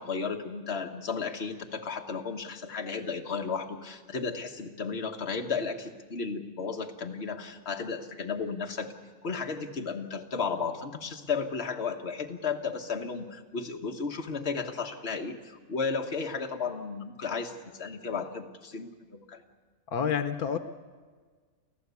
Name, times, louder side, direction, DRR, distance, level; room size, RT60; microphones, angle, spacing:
voice 1, 0.0-8.9 9.2-19.4, left 5 dB, 45° left, 3 dB, 1.6 m, -34 dB
voice 2, 19.9-20.6, left 7 dB, 80° left, 10 dB, 1.3 m, -28 dB
30.0 x 14.5 x 8.3 m, 1.5 s
omnidirectional pair, 1.5 m